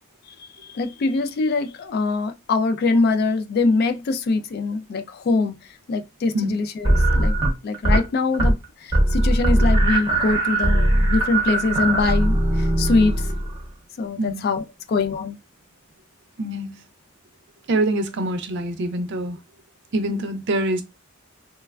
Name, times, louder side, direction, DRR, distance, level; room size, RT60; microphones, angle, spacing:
voice 1, 0.7-5.6 5.9-7.4 7.6-8.5 8.8-13.2 14.0-15.4, left 3 dB, 50° left, 0.3 m, -23 dB
sound 1, 6.8-8.0 8.3-8.6 8.9-13.7, right 1 dB, 20° right, 0.8 m, -20 dB
voice 2, 16.4-16.7 17.7-19.4 19.9-20.8, right 1 dB, 60° right, 0.5 m, -25 dB
3.1 x 2.1 x 2.3 m
head